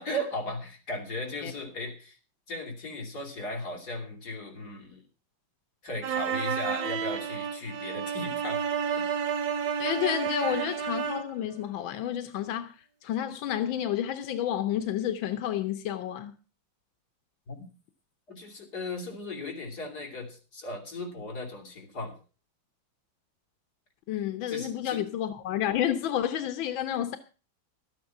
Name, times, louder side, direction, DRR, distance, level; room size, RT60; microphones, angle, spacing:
voice 1, 0.0-2.2 2.5-5.0 5.8-8.6 9.0-9.1 10.4-10.7 17.5-17.6 18.3-22.2 24.5-25.0, left 1 dB, 55° left, 3.7 m, -37 dB
sound 1, 6.0-11.4, right 7 dB, 75° right, 1.8 m, -31 dB
voice 2, 9.8-16.4 24.1-27.2, left 11 dB, 90° left, 1.6 m, -30 dB
12.5 x 9.3 x 5.9 m
omnidirectional pair, 2.1 m